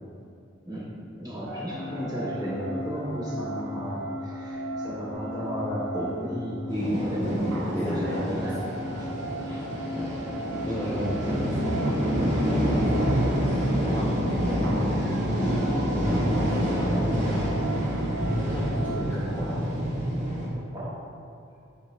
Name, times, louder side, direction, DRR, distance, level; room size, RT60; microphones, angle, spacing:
voice 1, 1.2-8.6 8.9-9.1 9.4-9.6 10.6-11.4 13.1-13.5 15.9-16.3 20.7-21.0, equal, 20° right, -10 dB, 1.2 m, -33 dB
sound 1, 1.5-19.6, right 3 dB, 80° right, 0.4 m, -40 dB
sound 2, 1.7-17.1, left 2 dB, 25° left, 1.0 m, -39 dB
sound 3, 6.7-20.5, equal, 40° right, 0.7 m, -27 dB
voice 2, 7.8-8.4 10.0-10.1 10.7-12.1 12.5-13.3 13.8-15.0 15.7-17.7 18.2-19.7, equal, 10° left, -8 dB, 0.4 m, -32 dB
4.5 x 2.0 x 4.2 m, 2.5 s
head